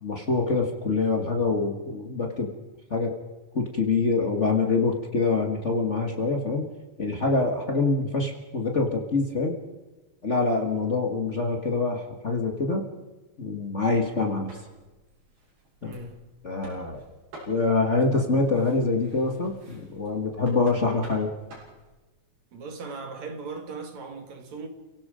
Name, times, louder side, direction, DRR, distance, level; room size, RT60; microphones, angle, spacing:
voice 1, 0.0-2.5 2.9-3.1 3.5-6.6 7.0-9.5 10.2-12.8 13.4-14.5 15.8-15.9 16.4-17.0 17.5-21.3, left 3 dB, 75° left, 0.6 m, -25 dB
sound 1, 14.1-22.0, right 1 dB, 80° right, 8.7 m, -50 dB
voice 2, 15.8-16.3 18.2-18.3 22.5-24.7, right 4 dB, 55° right, 3.1 m, -38 dB
29.5 x 17.5 x 5.1 m
omnidirectional pair, 4.3 m